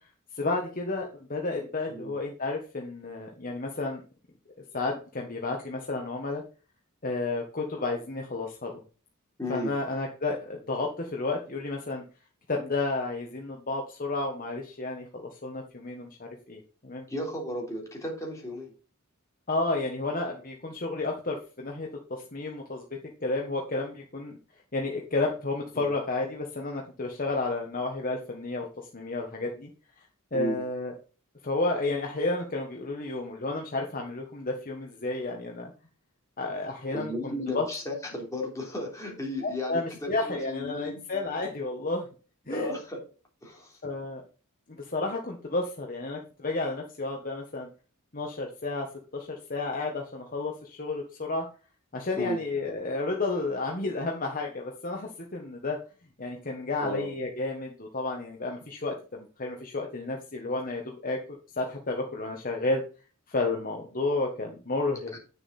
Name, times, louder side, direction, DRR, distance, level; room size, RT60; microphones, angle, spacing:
voice 1, 0.3-4.0 4.7-6.4 7.0-8.7 9.5-12.0 12.5-17.0 19.5-24.4 24.7-28.7 28.9-29.7 30.3-30.9 31.4-35.7 36.4-37.6 39.4-42.1 42.5-42.7 43.8-44.2 44.7-47.7 48.1-48.9 49.1-51.4 51.9-55.8 56.2-61.2 61.6-62.8 63.3-65.2, left 2 dB, 40° left, 1 dB, 1.3 m, -31 dB
voice 2, 9.4-9.8 17.1-18.7 25.7-25.9 30.3-30.6 36.9-41.0 42.5-43.0 43.4-43.8 52.2-52.4 56.8-57.1 65.1-65.2, left 1 dB, 15° left, -1 dB, 3.5 m, -34 dB
9.3 x 6.9 x 4.2 m, 0.36 s
head